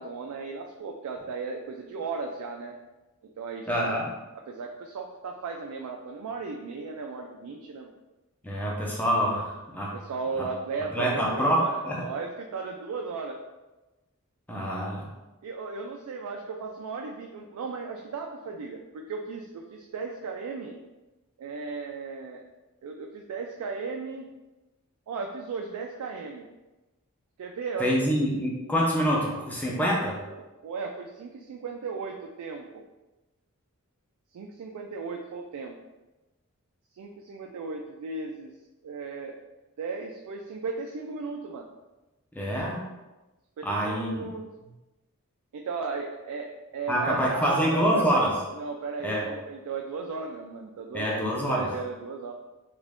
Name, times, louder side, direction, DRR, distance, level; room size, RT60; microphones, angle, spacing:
voice 1, 0.0-2.8 3.4-4.0 4.5-7.9 9.9-13.4 15.4-20.8 21.4-22.4 22.8-24.3 25.1-26.5 27.4-27.9 30.3-32.8 34.3-35.8 36.9-38.5 38.8-39.4 39.8-41.7 43.6-44.4 45.5-48.2 48.6-52.3, right 4 dB, 85° right, 2 dB, 0.3 m, -36 dB
voice 2, 3.7-4.1 8.4-10.0 10.4-10.5 10.9-12.0 14.5-15.1 27.8-30.2 42.3-42.8 43.6-44.3 46.9-48.3 49.0-49.2 50.9-51.7, equal, 5° left, -3 dB, 0.5 m, -26 dB
3.1 x 2.5 x 3.4 m, 1.1 s
head